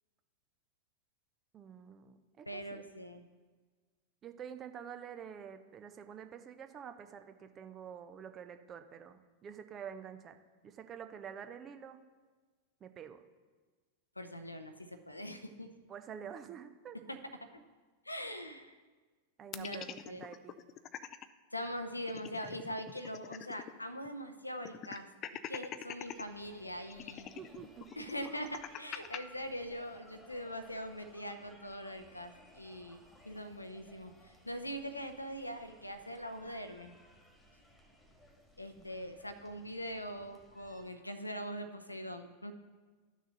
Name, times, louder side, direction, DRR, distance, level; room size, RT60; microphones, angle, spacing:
voice 1, 1.5-2.8 4.2-10.4 10.6-12.0 12.8-13.2 15.9-17.0 19.4-20.5 27.3-28.1 38.8-38.9, right 8 dB, 25° right, 9 dB, 0.6 m, -48 dB
voice 2, 2.5-3.2 14.2-15.7 17.1-17.2 18.1-18.8 19.5-20.3 21.5-25.1 25.3-27.3 28.0-36.9 38.6-42.5, equal, 85° left, 8 dB, 0.6 m, -42 dB
sound 1, 19.5-21.3 21.6-21.7 22.0-23.8 24.0-24.1 24.6-26.2 26.9-29.2, left 10 dB, 30° left, 0.4 m, -44 dB
sound 2, 26.0-40.9, equal, 15° left, 1.6 m, -60 dB
11.5 x 6.2 x 4.0 m, 1.4 s
figure-of-eight pair, 90°, 0 cm